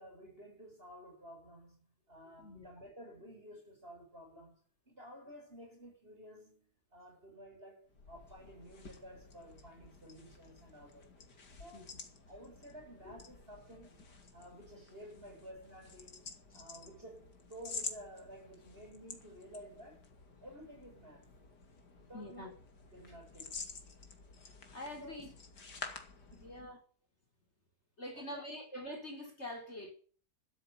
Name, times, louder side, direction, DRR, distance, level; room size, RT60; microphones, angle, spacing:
voice 1, 0.0-11.1 11.6-11.9 12.3-16.2 16.5-20.0 20.4-21.3 22.0-22.5 22.9-23.7 25.0-25.3 26.3-26.8 28.1-28.5, equal, 35° right, 7.9 m, -53 dB
voice 2, 2.4-2.7 11.7-11.8 13.0-13.2 22.1-22.5 24.7-25.3 26.4-26.8 28.0-29.9, left 1 dB, 40° left, 4.3 m, -45 dB
sound 1, 7.9-26.8, left 4 dB, 90° left, 3.1 m, -50 dB
13.0 x 12.5 x 7.2 m
omnidirectional pair, 1.7 m